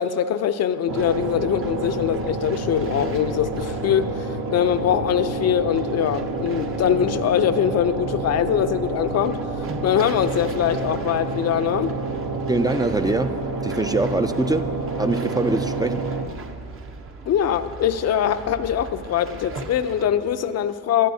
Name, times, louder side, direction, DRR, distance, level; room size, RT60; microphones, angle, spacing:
voice 1, 0.0-12.0 17.3-21.1, left 9 dB, 60° left, 10 dB, 0.5 m, -22 dB
sound 1, 0.9-20.1, right 3 dB, 45° right, 0.9 m, -39 dB
sound 2, 0.9-16.3, right 3 dB, 65° right, 1.1 m, -29 dB
voice 2, 12.3-16.1, right 2 dB, 15° right, 9 dB, 0.4 m, -24 dB
21.0 x 12.5 x 2.7 m, 2.7 s
cardioid pair, 90°, 30 cm